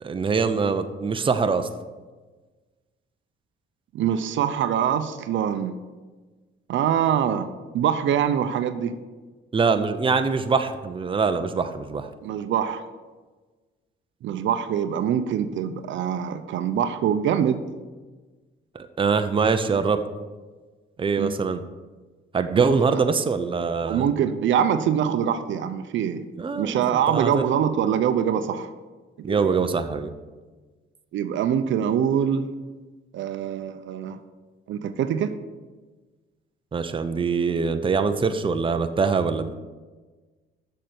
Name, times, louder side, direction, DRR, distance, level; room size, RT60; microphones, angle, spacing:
voice 1, 0.0-1.7 9.5-12.1 18.7-20.0 21.0-21.6 22.3-24.0 26.4-27.4 29.2-30.1 36.7-39.5, right 5 dB, 25° right, 8 dB, 0.7 m, -23 dB
voice 2, 3.9-5.7 6.7-7.5 7.7-8.9 12.2-12.8 14.2-17.6 21.2-21.4 23.9-26.2 26.5-28.7 29.3-29.6 31.1-32.5 33.1-34.2 34.7-35.3, right 9 dB, 70° right, 10 dB, 0.6 m, -24 dB
6.7 x 6.5 x 7.7 m, 1.3 s
cardioid pair, 90°, 20 cm